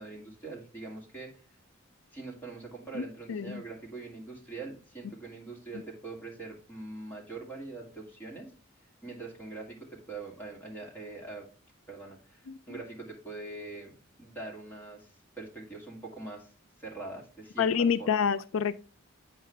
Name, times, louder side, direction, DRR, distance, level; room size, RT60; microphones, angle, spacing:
voice 1, 0.0-1.4 2.1-8.5 9.0-11.5 11.9-15.1 15.4-16.5 16.8-17.7 18.0-18.1, right 3 dB, 10° left, 2.1 m, -43 dB
voice 2, 3.3-3.6 12.5-12.8 17.6-18.7, left 6 dB, 80° left, 0.4 m, -28 dB
8.4 x 4.8 x 3.3 m
head